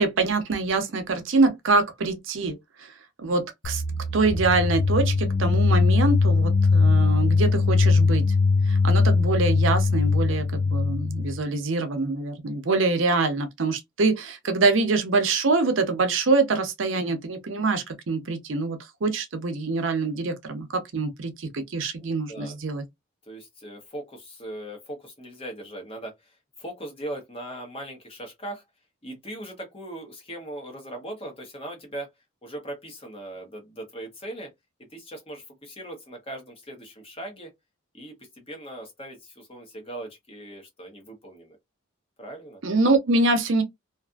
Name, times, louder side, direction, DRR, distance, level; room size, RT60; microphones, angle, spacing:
voice 1, 0.0-2.9 3.2-3.8 4.1-8.3 8.7-22.8 42.6-43.6, right 3 dB, 65° right, 0.6 m, -25 dB
sound 1, 3.6-11.4, left 4 dB, 50° left, 0.4 m, -21 dB
voice 2, 22.0-22.5 23.3-26.3 26.6-28.6 29.0-32.1 32.4-34.5 34.9-37.5 37.9-41.6 42.2-42.6, right 1 dB, 30° left, 0.9 m, -39 dB
2.5 x 2.5 x 2.3 m
head